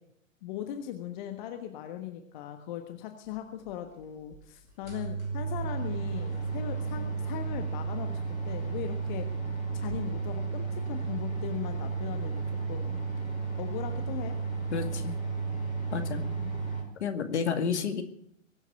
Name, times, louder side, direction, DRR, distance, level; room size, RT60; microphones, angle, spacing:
voice 1, 0.4-8.2 8.4-9.3 9.7-13.0 13.6-14.4 16.1-16.5, left 10 dB, 35° left, 6 dB, 1.4 m, -39 dB
sound 1, 3.6-3.7 4.3-4.4 4.7-16.8, right 4 dB, 90° left, 4.9 m, -33 dB
voice 2, 14.7-15.2 15.9-16.3 17.0-18.0, left 6 dB, 60° left, 6 dB, 2.3 m, -30 dB
22.5 x 8.1 x 7.0 m, 0.72 s
figure-of-eight pair, 110°, 39 cm